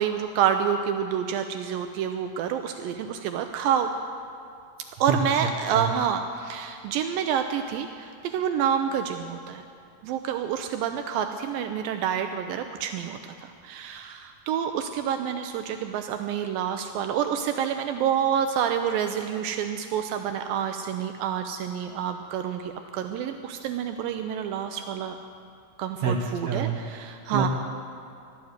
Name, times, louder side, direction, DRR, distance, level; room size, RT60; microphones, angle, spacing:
voice 1, 0.0-3.9 5.0-9.6 10.0-25.2 25.8-27.5, right 8 dB, 85° right, 6 dB, 2.3 m, -28 dB
voice 2, 26.5-26.8 27.3-27.5, right 6 dB, 65° right, 0 dB, 1.9 m, -26 dB
14.5 x 12.0 x 8.0 m, 2.4 s
omnidirectional pair, 4.2 m